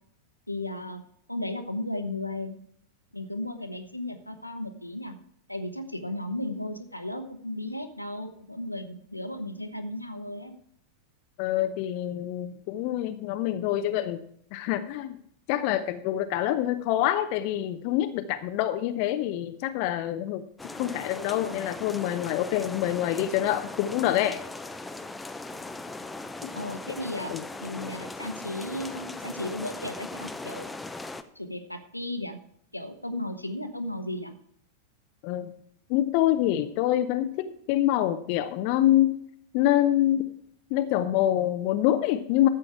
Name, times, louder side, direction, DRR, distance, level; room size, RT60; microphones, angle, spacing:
voice 1, 0.5-1.0 1.3-2.6 3.1-5.2 5.5-10.5 26.5-27.3 27.6-30.7 31.3-32.4 32.7-34.3, left 1 dB, 90° left, 7 dB, 1.0 m, -35 dB
voice 2, 11.4-14.2 14.5-15.2 15.5-20.4 20.8-24.4 26.4-26.5 27.3-27.4 35.2-35.5 35.9-39.2 39.5-40.2 40.7-42.5, left 13 dB, 45° left, 9 dB, 0.7 m, -26 dB
sound 1, 20.6-31.2, left 2 dB, 10° left, 0.7 m, -39 dB
12.5 x 7.8 x 4.7 m, 0.67 s
figure-of-eight pair, 90°, 0 cm